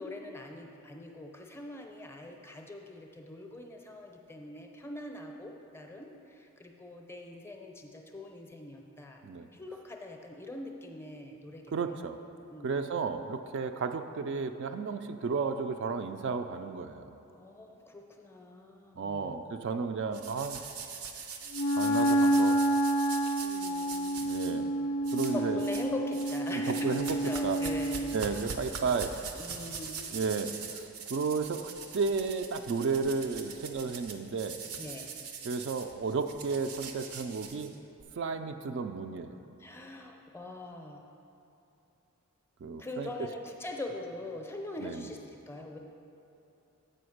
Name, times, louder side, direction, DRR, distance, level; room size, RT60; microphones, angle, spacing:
voice 1, 0.0-9.2 9.5-11.6 11.9-12.0 12.5-13.0 17.3-19.4 23.4-24.5 25.3-28.2 29.4-30.2 34.8-35.1 39.6-41.1 42.8-45.2 45.5-45.8, left 2 dB, 10° left, 2 dB, 0.5 m, -42 dB
voice 2, 11.7-12.2 12.6-17.0 19.0-20.6 21.8-22.8 24.2-24.7 25.1-25.6 26.5-27.2 27.4-27.6 28.1-29.1 29.6-29.7 30.1-34.6 35.4-37.7 38.2-39.3 42.6-43.1 44.8-45.0, right 4 dB, 55° right, 7 dB, 0.3 m, -33 dB
sound 1, 20.1-24.5 25.0-25.9 26.1-38.0, right 5 dB, 85° right, 0.7 m, -42 dB
Wind instrument woodwind instrument, 21.5-28.2, right 1 dB, 85° left, 0.4 m, -29 dB
7.7 x 5.1 x 6.4 m, 2.9 s
head